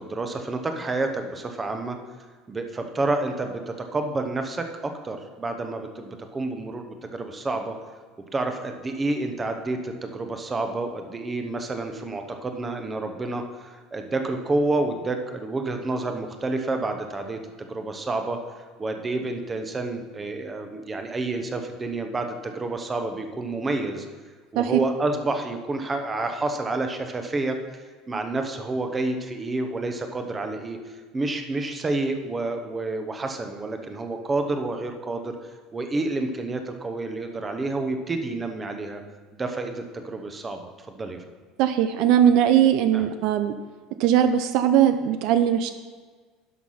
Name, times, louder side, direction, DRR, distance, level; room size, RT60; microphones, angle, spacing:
voice 1, 0.0-2.0 2.5-7.8 8.3-18.4 18.8-24.1 24.5-27.6 28.1-35.3 35.7-39.0 39.3-41.2 42.9-43.0, right 2 dB, 15° right, 5 dB, 0.9 m, -29 dB
voice 2, 41.6-43.5 44.0-45.7, right 10 dB, 55° right, 9 dB, 0.6 m, -20 dB
11.0 x 5.9 x 5.6 m, 1.5 s
cardioid pair, 165°, 0 cm